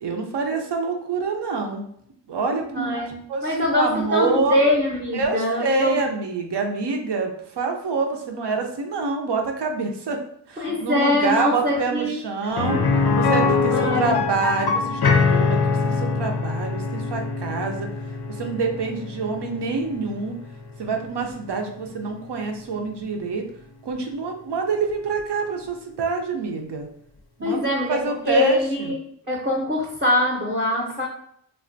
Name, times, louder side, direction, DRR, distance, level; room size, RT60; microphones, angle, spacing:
voice 1, 0.0-1.9 2.3-3.0 3.3-4.6 5.1-10.2 10.5-12.8 13.2-17.9 18.3-20.4 20.8-23.4 23.8-26.9 27.4-28.9, right 4 dB, 65° right, 3 dB, 0.6 m, -26 dB
voice 2, 2.7-3.2 3.4-6.0 10.6-12.5 13.7-14.1 27.4-29.0 29.3-31.1, left 1 dB, 20° right, -3 dB, 0.7 m, -23 dB
sound 1, 12.6-22.3 22.6-22.7 25.2-25.3, left 4 dB, 60° left, 0.5 m, -24 dB
3.3 x 2.3 x 2.6 m, 0.68 s
wide cardioid pair, 50°, 45 cm